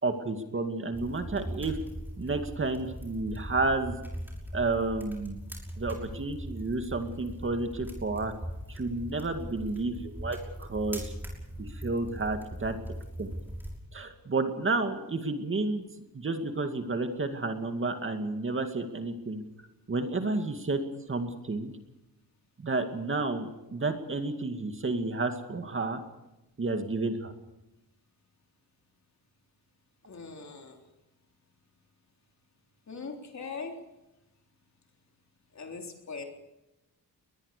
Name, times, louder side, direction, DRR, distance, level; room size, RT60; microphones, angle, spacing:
voice 1, 0.0-1.8 2.2-4.0 4.5-5.4 5.8-8.3 8.7-11.1 11.6-12.8 13.2-13.3 13.9-15.8 16.1-19.4 19.9-20.8 21.1-21.7 22.6-26.0 26.6-27.3, right 3 dB, 35° right, 6 dB, 2.3 m, -31 dB
sound 1, 0.9-13.8, equal, 5° right, 5.9 m, -40 dB
voice 2, 30.1-30.8 32.9-33.8 35.5-36.2, left 4 dB, 50° left, 3 dB, 3.8 m, -40 dB
21.5 x 20.5 x 6.8 m, 0.96 s
wide cardioid pair, 155°, 36 cm